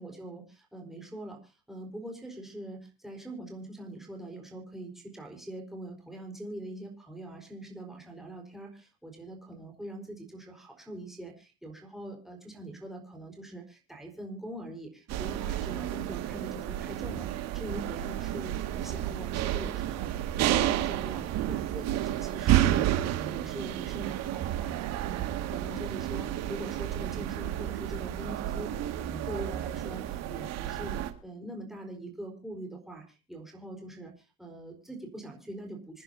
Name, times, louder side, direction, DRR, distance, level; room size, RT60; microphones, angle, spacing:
voice 1, 0.0-36.0, right 1 dB, ahead, 1 dB, 4.6 m, -43 dB
sound 1, 15.1-31.1, right 12 dB, 60° right, 2.1 m, -31 dB
27.0 x 10.0 x 2.8 m, 0.30 s
supercardioid pair, 120°, 30 cm